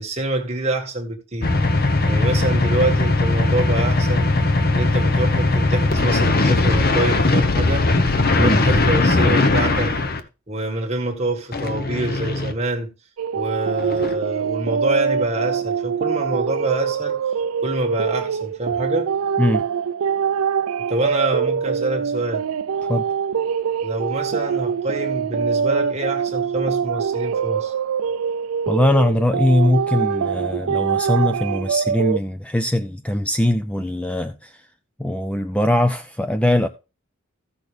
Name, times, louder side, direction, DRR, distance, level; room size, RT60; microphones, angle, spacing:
voice 1, 0.0-1.5 2.0-4.3 4.7-7.9 8.3-10.0 10.5-12.9 13.3-17.2 17.6-19.1 20.9-22.5 23.8-27.7, right 2 dB, 30° right, 1.8 m, -26 dB
sound 1, 1.4-10.2 11.5-12.5 13.8-14.1, left 2 dB, 45° left, 1.0 m, -19 dB
sound 2, 13.2-32.2, right 7 dB, 85° right, 0.4 m, -24 dB
voice 2, 28.7-34.5 35.0-36.7, left 1 dB, 5° left, 0.4 m, -21 dB
15.0 x 6.2 x 3.3 m
head